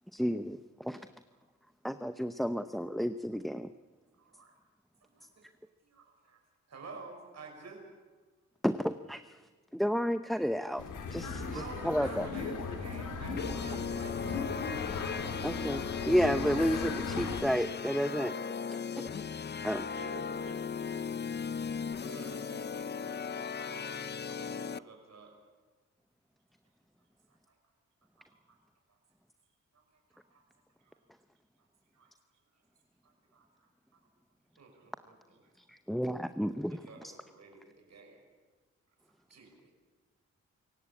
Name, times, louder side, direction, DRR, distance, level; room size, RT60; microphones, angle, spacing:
voice 1, 0.1-0.6 0.9-1.0 1.8-3.7 8.6-9.2 9.7-10.8 11.1-11.5 11.8-12.2 15.4-18.3 19.0-19.1 19.6-19.8 35.9-36.8, equal, ahead, 10 dB, 0.8 m, -31 dB
voice 2, 2.4-2.9 4.2-4.5 5.0-5.4 5.8-6.4 6.7-7.8 11.3-15.0 21.8-25.4 27.3-27.6 28.2-28.6 28.9-29.0 29.7-29.8 30.1-30.4 30.9-31.0 32.0-32.1 33.0-33.7 34.6-35.4 36.7-38.2 39.3-39.7, right 4 dB, 60° right, 2 dB, 5.9 m, -51 dB
sound 1, 10.8-17.4, left 4 dB, 85° left, 2.5 m, -37 dB
sound 2, 13.4-24.8, left 6 dB, 35° left, 0.6 m, -37 dB
voice 3, 19.9-21.2 28.2-28.3 30.8-31.0 31.9-32.1 34.7-34.9 35.4-35.5, right 4 dB, 75° right, 5 dB, 4.9 m, -51 dB
26.0 x 16.0 x 8.5 m, 1.4 s
cardioid pair, 60°, 30 cm